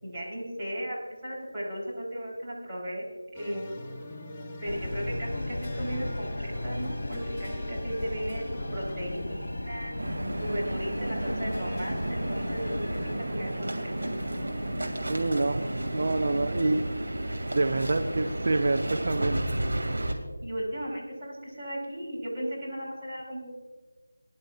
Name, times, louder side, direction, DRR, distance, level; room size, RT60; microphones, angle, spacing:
voice 1, 0.0-3.1 3.3-3.7 4.6-8.4 8.7-14.1 20.4-23.5, equal, 15° right, -9 dB, 4.1 m, -36 dB
sound 1, 3.3-18.3, left 1 dB, 15° left, 1.0 m, -41 dB
sound 2, 4.6-13.1, left 1 dB, 70° left, 1.3 m, -36 dB
sound 3, 10.0-20.1, right 1 dB, 60° right, 2.5 m, -32 dB
voice 2, 15.0-15.6 15.9-16.8 17.5-19.5, right 2 dB, 45° right, 6 dB, 0.6 m, -27 dB
21.5 x 11.0 x 2.5 m, 1.3 s
figure-of-eight pair, 165°, 0 cm